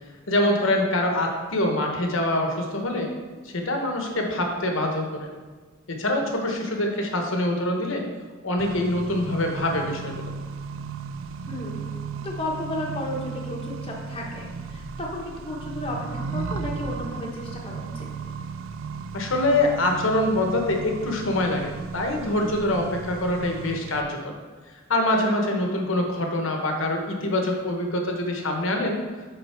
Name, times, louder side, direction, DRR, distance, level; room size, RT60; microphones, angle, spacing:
voice 1, 0.3-3.1 3.4-5.3 5.9-8.0 8.4-10.3 19.1-24.3 24.9-29.0, left 1 dB, 70° left, 2 dB, 1.1 m, -25 dB
Accelerating revving vroom, 8.6-24.0, right 5 dB, 70° right, 0.4 m, -35 dB
voice 2, 11.5-18.1 25.2-25.3, left 1 dB, 25° left, -2 dB, 1.0 m, -33 dB
6.7 x 5.5 x 4.4 m, 1.4 s
head